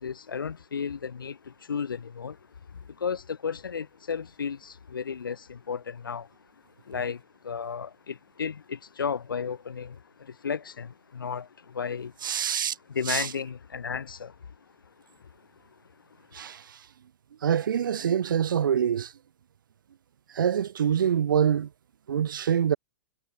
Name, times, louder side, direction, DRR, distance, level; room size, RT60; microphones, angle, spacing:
voice 1, 0.0-6.3 6.8-12.1 12.5-14.6 14.8-14.9 16.4-16.5, left 6 dB, 80° left, 0.8 m, -34 dB
voice 2, 12.2-12.8 13.1-13.3 16.3-16.8 17.4-19.1 20.3-21.7 22.1-22.8, right 8 dB, 70° right, 0.5 m, -25 dB
figure-of-eight pair, 105°, 11 cm